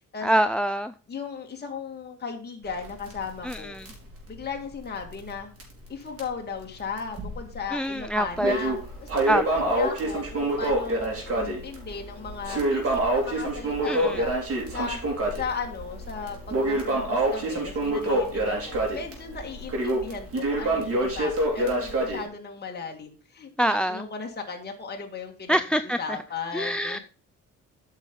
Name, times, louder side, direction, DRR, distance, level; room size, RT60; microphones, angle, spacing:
voice 1, 0.2-0.9 3.4-3.9 7.7-8.5 9.3-9.8 13.9-14.2 23.6-24.1 25.5-26.0 26.5-27.0, right 1 dB, 5° left, 0.3 m, -25 dB
voice 2, 1.1-3.8 4.3-5.5 5.9-14.3 14.7-15.0 15.4-27.0, left 5 dB, 35° left, 1.9 m, -36 dB
Crackle, 2.7-5.4 5.6-5.7 6.2-6.3 7.0-7.6 8.0-22.2, right 1 dB, 50° right, 3.9 m, -27 dB
8.8 x 5.9 x 5.2 m
cardioid pair, 90°, 30 cm